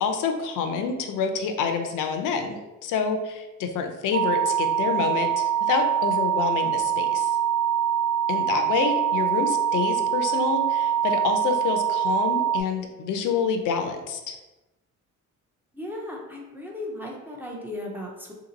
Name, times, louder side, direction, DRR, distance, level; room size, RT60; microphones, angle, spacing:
voice 1, 0.0-7.3 8.3-14.4, left 5 dB, 80° left, 6 dB, 0.5 m, -27 dB
sound 1, 4.1-12.6, right 10 dB, 90° right, 0.9 m, -24 dB
voice 2, 15.7-18.3, left 1 dB, 5° right, -3 dB, 0.5 m, -36 dB
2.8 x 2.8 x 3.9 m, 1.1 s
cardioid pair, 160°, 31 cm